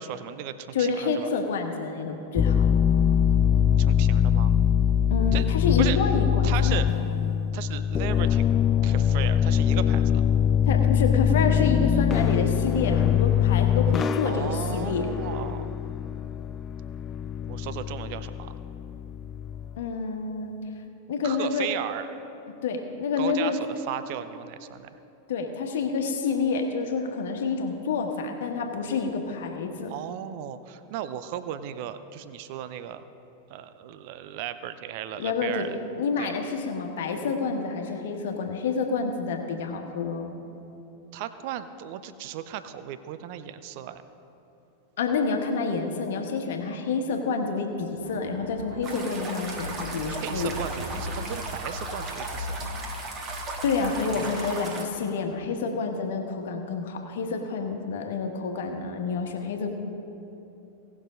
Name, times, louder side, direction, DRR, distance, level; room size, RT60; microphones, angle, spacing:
voice 1, 0.0-1.3 3.8-4.5 5.3-5.5 5.8-6.0 6.4-6.9 7.5-8.4 8.8-10.2 14.2-15.7 17.5-18.6 21.2-22.2 23.2-24.9 29.9-33.0 33.5-35.8 36.2-36.3 41.1-44.0 50.1-52.7, right 11 dB, 45° right, 12 dB, 0.5 m, -36 dB
voice 2, 0.7-2.6 5.1-6.8 10.6-15.1 19.8-20.6 21.1-21.7 22.5-23.6 25.3-29.9 35.2-35.7 36.0-40.3 45.0-50.5 53.6-59.7, left 4 dB, 60° left, 4 dB, 1.3 m, -28 dB
sound 1, 2.4-19.8, left 9 dB, 25° left, 0.4 m, -23 dB
sound 2, 47.9-54.8, left 1 dB, 75° right, 1.3 m, -39 dB
sound 3, 48.8-54.8, right 2 dB, 30° right, 1.6 m, -36 dB
18.0 x 6.2 x 5.1 m, 2.9 s
figure-of-eight pair, 90°, 0 cm